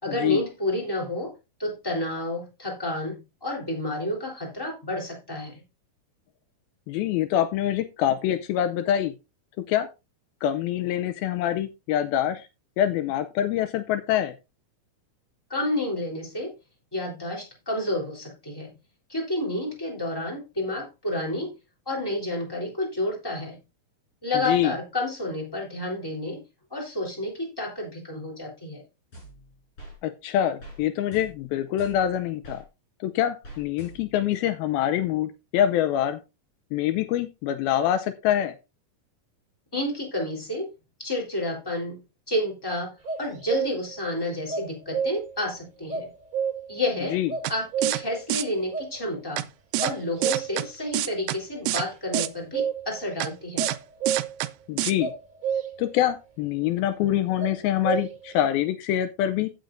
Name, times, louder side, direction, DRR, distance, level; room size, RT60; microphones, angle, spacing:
voice 1, 0.0-1.3 1.6-5.6 15.5-16.5 16.9-18.7 19.1-21.5 21.8-23.6 24.2-26.4 26.7-28.8 39.7-40.7 41.0-42.0 42.3-46.1 46.7-47.2 47.5-49.4 49.8-53.7, left 1 dB, 5° left, -1 dB, 3.2 m, -30 dB
voice 2, 6.9-9.1 9.7-9.9 10.4-12.5 12.8-14.3 24.5-24.8 30.0-32.6 33.0-36.2 36.7-38.6 47.1-47.3 54.7-55.1 55.8-59.5, left 11 dB, 80° left, 11 dB, 2.4 m, -25 dB
sound 1, 29.1-30.0 30.6-30.8 31.1-32.6 33.4-34.3, right 1 dB, 35° left, 6.0 m, -45 dB
sound 2, 43.1-44.0 44.5-45.4 45.9-46.9 47.3-48.2 48.7-48.9 49.8-50.8 52.1-53.0 53.6-54.5 55.0-55.9 57.4-58.3, right 7 dB, 25° right, 2.5 m, -30 dB
sound 3, 47.4-47.5 47.8-48.0 48.3-48.4 49.4-49.5 49.7-49.9 50.2-50.6 50.9-51.4 51.7-51.8 52.1-52.3 53.2-53.3 53.6-53.8 54.1-54.5 54.8-54.9, right 16 dB, 80° right, 1.9 m, -26 dB
15.5 x 6.5 x 2.6 m, 0.26 s
omnidirectional pair, 4.4 m